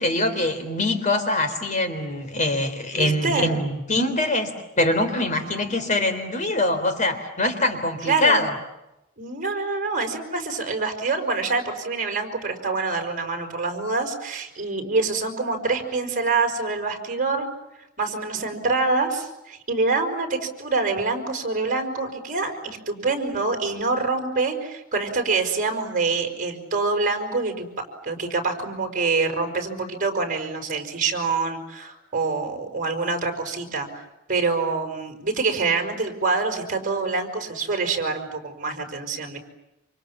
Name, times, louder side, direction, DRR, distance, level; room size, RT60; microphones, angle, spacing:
voice 1, 0.0-8.5, left 1 dB, 35° left, 8 dB, 3.8 m, -23 dB
voice 2, 2.9-3.5 8.0-8.5 9.2-17.5 18.0-27.7 28.0-34.0 34.3-39.4, right 3 dB, 40° right, 5 dB, 5.4 m, -26 dB
28.5 x 27.5 x 7.4 m, 0.92 s
head